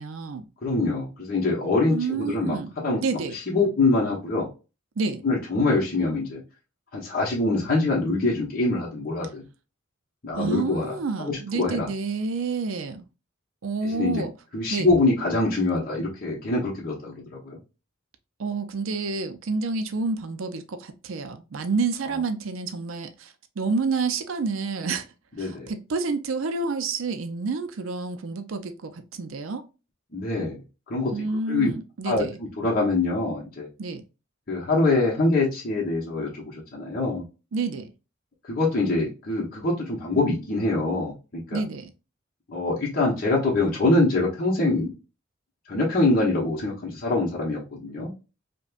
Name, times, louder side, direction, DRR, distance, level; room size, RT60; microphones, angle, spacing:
voice 1, 0.0-0.4 1.9-2.7 3.0-3.4 5.0-5.2 10.4-13.0 13.6-14.3 14.7-14.9 18.4-25.1 25.4-29.6 31.1-32.4 33.8-34.0 37.5-37.9 41.5-41.9, right 4 dB, 75° right, 0.5 m, -29 dB
voice 2, 0.6-2.6 2.8-3.0 3.5-4.5 5.2-6.4 6.9-9.4 10.2-10.9 11.2-11.9 13.8-14.2 14.5-17.6 25.4-25.7 30.1-30.6 30.9-31.7 32.0-32.2 32.6-33.7 34.5-37.2 38.5-41.6 42.5-44.9 45.7-48.1, left 2 dB, 45° left, 1.1 m, -24 dB
5.0 x 2.3 x 2.4 m
head